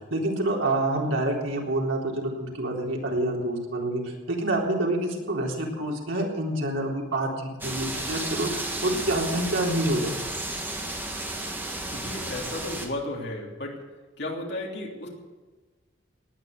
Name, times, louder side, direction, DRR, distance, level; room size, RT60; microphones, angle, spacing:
voice 1, 0.1-10.2, right 1 dB, 85° right, -1 dB, 3.8 m, -27 dB
sound 1, 7.6-12.9, right 2 dB, 10° right, 1.9 m, -33 dB
voice 2, 11.9-13.8 14.2-15.1, left 2 dB, 60° left, -2 dB, 3.2 m, -34 dB
18.5 x 10.5 x 6.7 m, 1.3 s
head